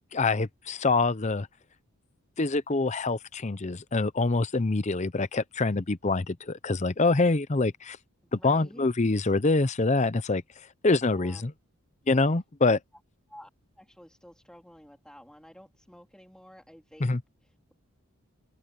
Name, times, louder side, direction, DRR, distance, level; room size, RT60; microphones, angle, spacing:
voice 1, 0.1-1.5 2.4-8.0 8.3-10.4 10.8-11.5 12.1-12.8 17.0-17.2, left 3 dB, 30° left, 0.7 m, -25 dB
voice 2, 8.2-8.9 11.1-11.4 13.3-13.5 13.8-17.2, equal, 5° left, 3.6 m, -51 dB
open air
head